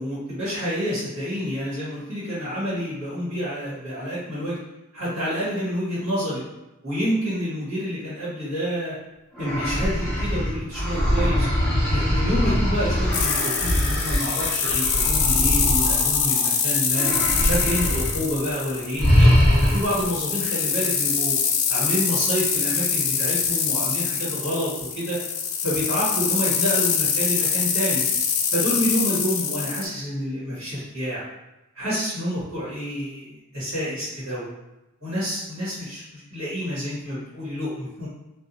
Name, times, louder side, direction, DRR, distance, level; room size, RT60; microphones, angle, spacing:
voice 1, 0.0-4.6 4.9-6.4 6.8-8.9 9.4-11.5 11.9-17.1 17.4-19.3 19.6-21.3 21.7-24.7 24.9-25.2 25.6-28.0 28.5-31.3 31.7-34.4 35.0-38.1, equal, 70° right, -11 dB, 1.5 m, -28 dB
sound 1, 9.3-16.5 16.9-18.2 18.4-18.6 19.0-20.1, equal, 5° left, 0.7 m, -22 dB
sound 2, 13.1-29.8, left 6 dB, 90° left, 0.4 m, -24 dB
2.7 x 2.4 x 2.6 m, 0.97 s
head